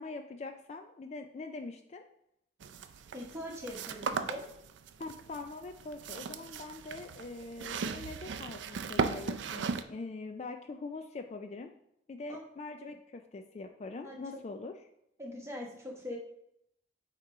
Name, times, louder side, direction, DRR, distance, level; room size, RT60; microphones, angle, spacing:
voice 1, 0.0-2.0 5.0-11.7 12.1-14.7, left 3 dB, 35° left, 6 dB, 0.3 m, -43 dB
sound 1, 2.6-9.8, right 5 dB, 80° right, 0.4 m, -37 dB
voice 2, 3.1-4.4 12.3-12.5 12.8-13.0 14.0-14.2 15.2-16.2, left 1 dB, 15° right, -1 dB, 1.1 m, -42 dB
8.0 x 2.9 x 4.8 m, 0.78 s
head